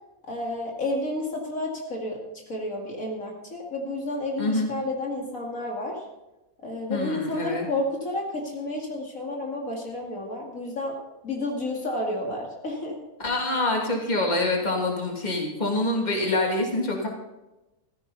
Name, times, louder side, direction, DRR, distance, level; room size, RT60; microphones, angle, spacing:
voice 1, 0.3-2.2 2.5-6.0 6.6-11.0 11.2-13.0, left 1 dB, 60° left, -1 dB, 2.8 m, -31 dB
voice 2, 4.4-4.7 6.9-7.7 13.2-17.1, left 2 dB, 30° left, 0 dB, 2.8 m, -26 dB
15.5 x 14.5 x 4.1 m, 1.0 s
omnidirectional pair, 1.6 m